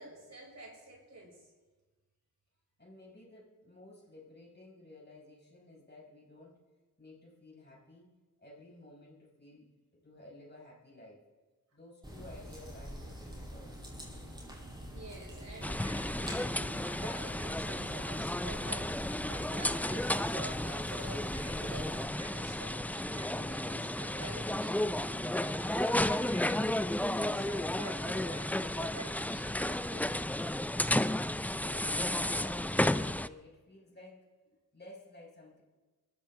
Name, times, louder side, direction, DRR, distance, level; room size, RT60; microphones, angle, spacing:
voice 1, 0.0-1.5 14.9-30.3, right 1 dB, 55° right, -1 dB, 6.5 m, -48 dB
voice 2, 2.8-6.6 7.0-8.1 8.4-9.7 10.0-11.2 11.7-13.8 29.0-29.1 29.4-29.5 31.7-34.3 34.7-35.6, left 2 dB, 30° left, -2 dB, 5.9 m, -54 dB
sound 1, 12.0-22.0, equal, 15° right, 6.6 m, -45 dB
sound 2, 15.6-33.3, left 1 dB, 5° left, 0.4 m, -33 dB
22.5 x 14.5 x 3.7 m, 1.2 s
cardioid pair, 55°, 33 cm